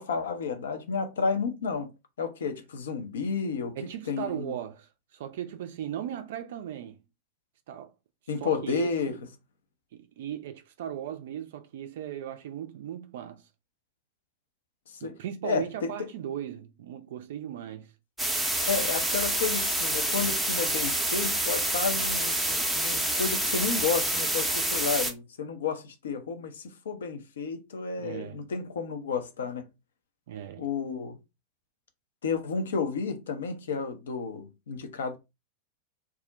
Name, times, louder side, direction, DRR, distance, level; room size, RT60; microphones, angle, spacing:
voice 1, 0.0-1.9 2.2-4.5 8.3-9.1 14.9-15.2 15.4-16.1 18.6-29.7 30.6-31.2 32.2-35.2, left 5 dB, 65° left, 0.5 m, -31 dB
voice 2, 3.8-7.0 7.7-7.9 8.4-9.2 9.9-13.4 15.0-17.9 28.0-28.4 30.3-30.7, right 10 dB, 55° right, 0.3 m, -37 dB
sound 1, 18.2-25.1, right 1 dB, 5° right, 0.6 m, -27 dB
2.3 x 2.0 x 3.7 m
figure-of-eight pair, 90°, 0 cm